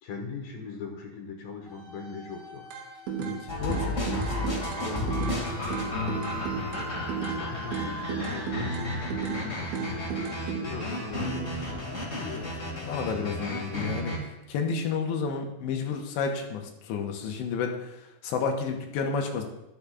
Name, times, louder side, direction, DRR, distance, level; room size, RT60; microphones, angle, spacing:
voice 1, 0.0-2.7 4.0-7.0 7.4-9.1 9.9-12.6, left 4 dB, 70° left, 2 dB, 2.4 m, -40 dB
sound 1, 1.6-14.4, equal, 15° right, 3.1 m, -46 dB
sound 2, 2.7-3.4 3.7-5.4 5.7-7.4 7.7-9.4 9.7-10.6, right 8 dB, 80° right, 3.4 m, -33 dB
voice 2, 3.2-4.5 9.3-9.6 12.3-12.5 12.8-19.4, left 5 dB, 90° left, 2 dB, 3.3 m, -31 dB
sound 3, 3.5-14.2, left 1 dB, 35° left, 1.3 m, -33 dB
12.0 x 11.5 x 2.4 m, 0.89 s
omnidirectional pair, 5.0 m